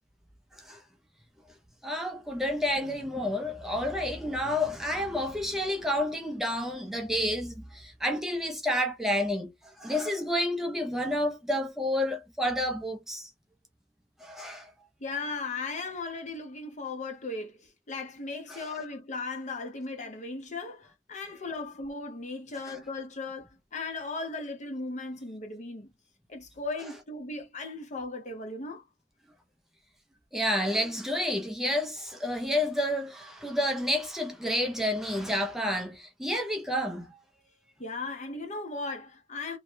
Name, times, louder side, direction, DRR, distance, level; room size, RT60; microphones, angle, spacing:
voice 1, 1.8-13.3 14.2-14.7 18.5-18.7 30.3-37.1, left 1 dB, ahead, 0.4 m, -30 dB
voice 2, 15.0-25.9 26.3-28.8 37.8-39.6, left 3 dB, 45° left, 0.7 m, -37 dB
2.6 x 2.1 x 3.1 m
head